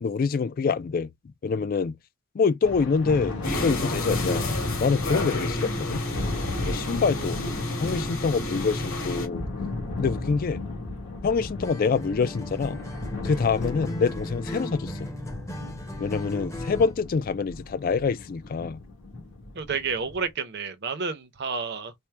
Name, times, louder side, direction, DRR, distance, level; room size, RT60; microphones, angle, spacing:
voice 1, 0.0-1.1 1.4-1.9 2.3-3.3 3.6-4.4 4.8-6.0 6.6-7.4 7.8-9.5 10.0-10.6 11.2-12.8 13.2-15.1 16.0-18.8, left 5 dB, 45° left, 0.3 m, -25 dB
Thunder, 2.6-20.3, left 2 dB, 65° left, 1.5 m, -36 dB
sound 1, 3.4-9.3, left 1 dB, 85° left, 2.1 m, -30 dB
Acoustic guitar, 11.6-17.0, left 1 dB, 15° left, 0.7 m, -37 dB
voice 2, 19.5-21.9, right 5 dB, 50° right, 0.7 m, -30 dB
4.4 x 2.1 x 3.3 m
head